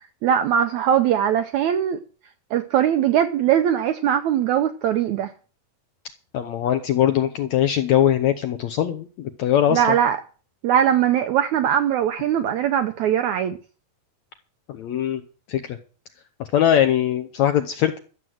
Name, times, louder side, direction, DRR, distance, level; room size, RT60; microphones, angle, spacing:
voice 1, 0.2-2.0 2.5-5.3 9.7-10.2 10.6-13.6, right 9 dB, 80° right, 1.7 m, -20 dB
voice 2, 6.3-10.0 14.7-15.2 15.5-15.8 16.5-18.0, left 10 dB, 75° left, 1.7 m, -21 dB
13.5 x 7.6 x 7.9 m
omnidirectional pair, 4.2 m